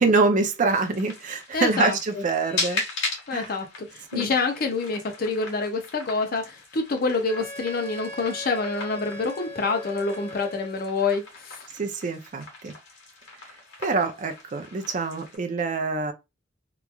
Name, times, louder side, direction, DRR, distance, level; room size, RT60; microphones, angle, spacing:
voice 1, 0.0-2.8 3.3-3.5 4.1-4.3 11.7-12.7 13.8-16.1, right 3 dB, 45° right, 0.5 m, -25 dB
sound 1, 0.7-15.4, left 3 dB, 80° left, 1.2 m, -38 dB
voice 2, 1.5-2.2 3.3-3.7 3.9-11.6, left 4 dB, 55° left, 0.5 m, -27 dB
Wind instrument woodwind instrument, 7.3-11.0, equal, 10° left, 0.7 m, -40 dB
2.9 x 2.3 x 2.3 m
head